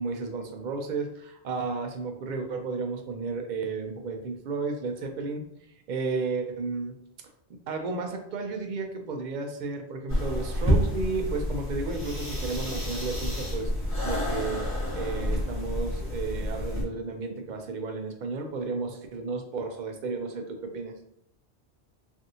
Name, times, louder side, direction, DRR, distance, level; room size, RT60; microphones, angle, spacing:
voice 1, 0.0-5.4 5.9-6.9 7.7-13.7 14.0-14.7 14.9-20.9, right 4 dB, 60° right, 4 dB, 0.5 m, -33 dB
sound 1, 10.1-16.8, equal, 10° left, 1.0 m, -29 dB
3.3 x 2.6 x 2.7 m, 0.72 s
omnidirectional pair, 1.2 m